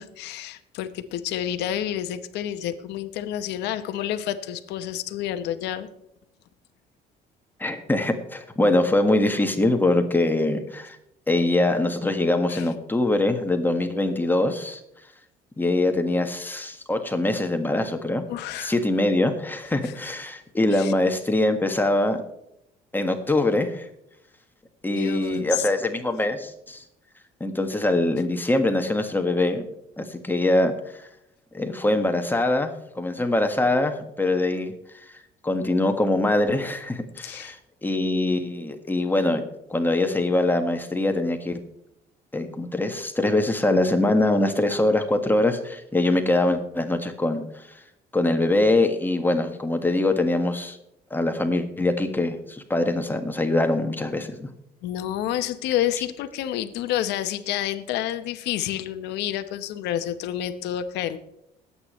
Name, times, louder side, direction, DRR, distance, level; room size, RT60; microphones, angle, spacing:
voice 1, 0.0-5.9 12.5-12.7 18.3-18.7 19.8-20.1 20.7-20.9 24.9-25.7 37.2-37.5 54.8-61.2, left 11 dB, 85° left, 10 dB, 1.1 m, -29 dB
voice 2, 7.6-11.0 11.3-14.8 15.6-18.2 18.6-22.2 22.9-23.9 24.8-26.8 27.4-29.6 30.0-30.7 31.0-31.1 31.5-34.7 35.4-37.6 37.8-39.4 39.7-41.6 42.3-47.7 48.1-50.8 51.1-54.5, left 2 dB, 10° left, 6 dB, 1.6 m, -23 dB
21.5 x 8.7 x 3.2 m, 0.80 s
cardioid pair, 110°, 17 cm